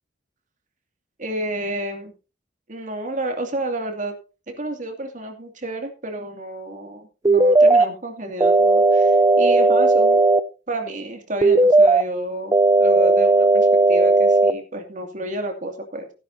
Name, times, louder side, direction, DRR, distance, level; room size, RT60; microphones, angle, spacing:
voice 1, 1.2-2.1 2.7-4.2 4.5-10.2 10.7-12.5 12.8-16.1, right 1 dB, 45° right, 4 dB, 2.5 m, -30 dB
sound 1, 7.2-7.8 8.4-10.4 11.4-12.0 12.5-14.5, right 2 dB, 20° right, 0.6 m, -15 dB
16.5 x 11.0 x 2.8 m, 0.31 s
head